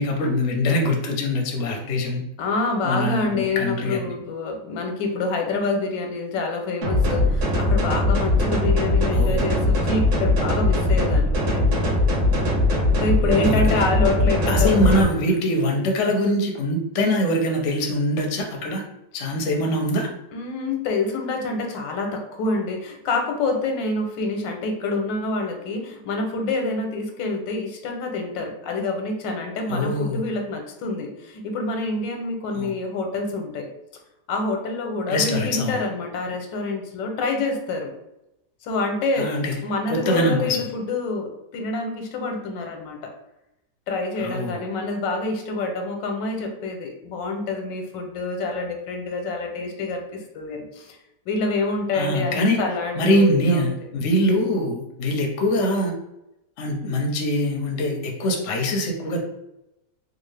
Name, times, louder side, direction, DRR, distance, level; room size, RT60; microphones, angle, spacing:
voice 1, 0.0-2.2 2.8-4.0 9.1-9.5 13.2-13.8 14.5-18.8 19.1-20.1 29.7-30.2 32.5-32.7 35.1-35.8 39.2-39.5 39.9-40.7 44.2-44.6 51.9-52.6 52.9-55.9 56.6-59.2, equal, 60° left, 2 dB, 0.8 m, -23 dB
voice 2, 2.4-12.0 13.0-15.1 20.3-33.7 34.3-37.9 38.6-39.3 39.6-43.1 43.9-51.0 51.3-53.6, left 3 dB, 90° left, 3 dB, 1.4 m, -27 dB
sound 1, 6.8-15.0, left 2 dB, 65° right, 1.3 m, -20 dB
3.6 x 2.4 x 3.2 m, 0.87 s
omnidirectional pair, 1.9 m